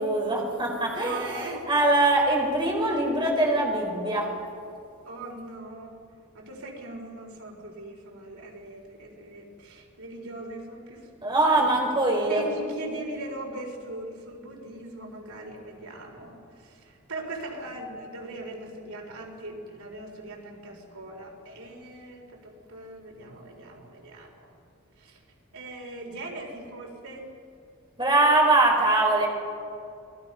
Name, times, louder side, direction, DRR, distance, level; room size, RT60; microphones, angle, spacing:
voice 1, 0.0-4.3 11.2-12.4 28.0-29.3, right 2 dB, 20° right, -1 dB, 4.3 m, -22 dB
voice 2, 1.0-1.6 5.0-6.0 6.3-11.1 11.6-11.8 12.3-24.5 25.0-25.2 25.5-27.2, right 2 dB, 90° right, 1 dB, 4.2 m, -40 dB
28.5 x 20.5 x 5.7 m, 2.5 s
head